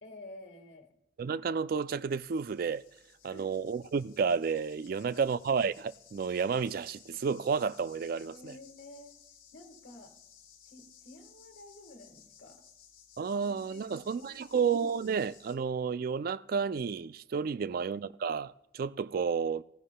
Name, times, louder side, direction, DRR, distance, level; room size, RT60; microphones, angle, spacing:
voice 1, 0.0-0.9 3.2-3.6 4.9-5.2 8.2-9.2 9.5-10.1 10.6-12.6 13.3-14.7 17.6-17.7, left 2 dB, 70° left, 1.6 m, -51 dB
voice 2, 1.2-2.8 3.2-8.5 13.2-19.6, right 6 dB, 50° right, 0.3 m, -31 dB
sound 1, 2.1-15.5, left 8 dB, 45° left, 2.4 m, -58 dB
17.0 x 15.0 x 2.2 m
head